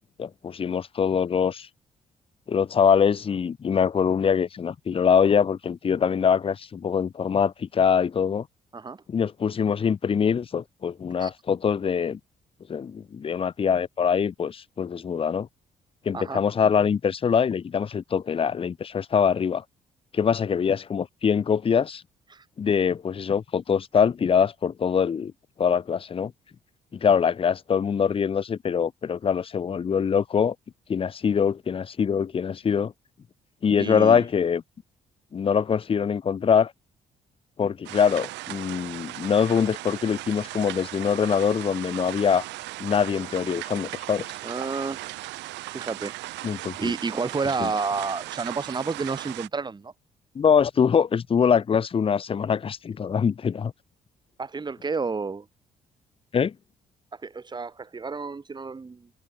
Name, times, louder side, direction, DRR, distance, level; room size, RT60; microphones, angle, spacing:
voice 1, 0.2-1.7 2.5-8.5 9.1-12.2 12.7-15.5 16.1-19.6 20.1-22.0 22.6-25.3 25.6-26.3 26.9-30.5 30.9-32.9 33.6-34.6 35.3-36.7 37.6-42.4 42.8-44.3 46.4-46.9 47.6-47.7 50.4-53.7 56.3-56.5, left 7 dB, 30° left, 0.5 m, -23 dB
voice 2, 33.8-34.2 44.4-45.1 45.7-46.2 46.5-49.9 54.4-55.5 57.1-59.1, right 4 dB, 20° right, 1.0 m, -30 dB
sound 1, 37.9-49.5, right 19 dB, 65° right, 0.5 m, -37 dB
figure-of-eight pair, 45°, 20 cm